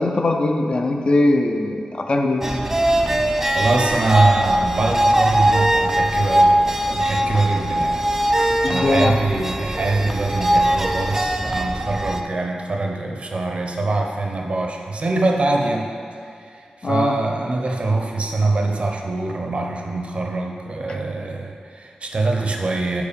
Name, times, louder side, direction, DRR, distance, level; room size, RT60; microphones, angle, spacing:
voice 1, 0.0-2.5 8.6-9.2 16.8-17.1, left 2 dB, 45° left, 3 dB, 0.5 m, -20 dB
sound 1, 2.4-12.2, right 1 dB, 15° right, 0.4 m, -20 dB
voice 2, 3.5-8.1 8.7-15.9 16.4-23.0, right 2 dB, 50° right, 1 dB, 0.7 m, -23 dB
4.8 x 4.6 x 5.2 m, 2.4 s
wide cardioid pair, 95°, 3 cm